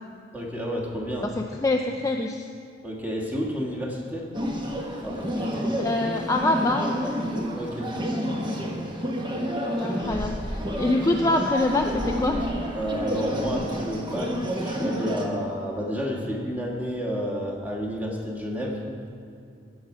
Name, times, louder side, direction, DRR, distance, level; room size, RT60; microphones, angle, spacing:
voice 1, 0.3-1.3 2.8-4.3 5.0-5.7 7.5-8.0 8.2-8.8 9.8-10.2 12.7-18.8, equal, 10° right, -3 dB, 1.5 m, -31 dB
voice 2, 1.6-2.5 5.8-7.1 9.8-12.4, left 2 dB, 15° left, 3 dB, 0.4 m, -25 dB
sound 1, 4.3-15.2, equal, 25° right, 1.1 m, -29 dB
16.5 x 6.4 x 4.8 m, 2.4 s
head